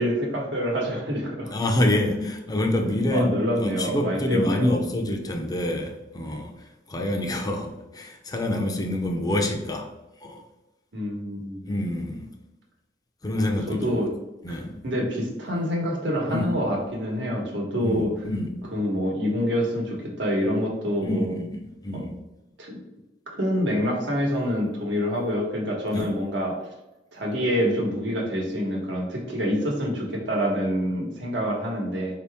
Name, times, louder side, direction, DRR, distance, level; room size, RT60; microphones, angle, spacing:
voice 1, 0.0-1.5 3.1-4.8 10.9-11.6 13.7-14.1 14.5-18.1 18.7-21.3 22.6-22.8 23.3-26.7 27.1-32.2, equal, 85° right, -1 dB, 1.1 m, -26 dB
voice 2, 1.5-9.9 10.2-10.4 11.7-12.3 13.2-14.0 14.4-14.8 16.3-16.6 17.8-18.7 21.0-22.2 25.9-26.1, left 1 dB, 20° left, 2 dB, 0.5 m, -27 dB
4.5 x 2.8 x 3.4 m, 0.97 s
head